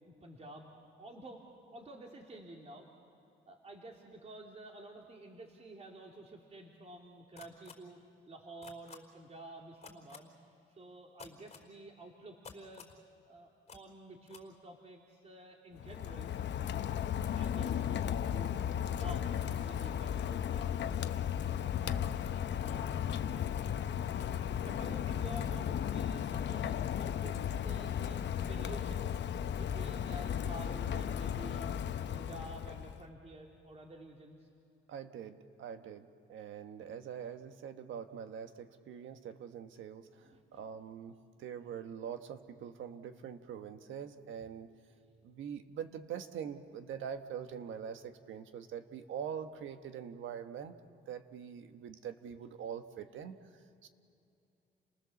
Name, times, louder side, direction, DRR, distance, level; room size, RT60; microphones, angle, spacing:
voice 1, 0.0-1.4 1.7-2.9 3.5-8.0 8.3-10.3 10.7-12.9 13.3-16.3 16.7-16.9 17.3-19.3 19.6-23.4 24.0-29.2 29.5-31.7 32.1-34.5 40.2-40.6 41.6-41.7, right 1 dB, 35° right, 0 dB, 3.0 m, -51 dB
sound 1, 7.4-7.7 8.6-9.0 9.8-10.2 11.2-11.6 12.4-13.0 13.7-13.8 14.3-14.4, left 6 dB, 30° left, 4.0 m, -50 dB
Rain, 15.8-33.0, left 9 dB, 60° left, 0.9 m, -35 dB
voice 2, 34.9-44.7 45.2-50.7 51.1-53.9, right 8 dB, 80° right, 8 dB, 1.4 m, -44 dB
30.0 x 19.0 x 7.1 m, 2.7 s
cardioid pair, 90°, 20 cm